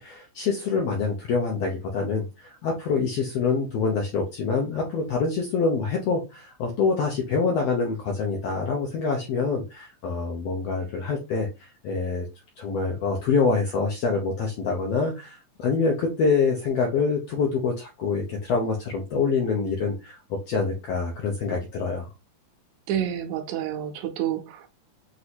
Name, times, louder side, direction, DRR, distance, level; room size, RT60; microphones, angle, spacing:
voice 1, 0.0-12.3 12.6-20.2 20.5-22.1, left 4 dB, 80° left, 1.4 m, -26 dB
voice 2, 22.9-24.7, right 10 dB, 75° right, 1.9 m, -29 dB
6.1 x 2.6 x 2.8 m
omnidirectional pair, 3.8 m